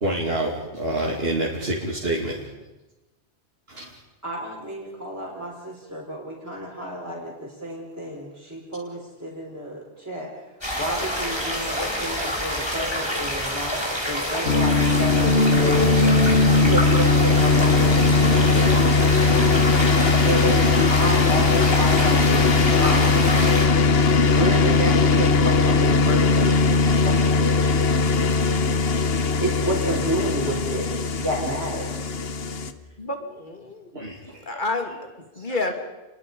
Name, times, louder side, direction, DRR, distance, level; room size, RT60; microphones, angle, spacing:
voice 1, 0.0-2.4 3.7-3.9 33.9-34.2 34.5-34.6 35.5-35.7, right 1 dB, 65° right, -3 dB, 3.0 m, -27 dB
voice 2, 4.2-10.3 10.8-16.2 16.6-19.6 20.2-22.5 22.8-23.3 24.3-27.9 29.4-30.9 31.2-32.1, right 1 dB, 15° right, -6 dB, 4.6 m, -31 dB
sound 1, 10.6-23.7, equal, 25° left, 4.5 m, -27 dB
sound 2, 14.5-32.7, left 3 dB, 65° left, 1.2 m, -19 dB
voice 3, 33.0-33.9 34.5-34.9 35.4-35.7, left 2 dB, 45° left, 4 dB, 2.8 m, -28 dB
29.5 x 21.5 x 5.5 m, 1.1 s
omnidirectional pair, 1.1 m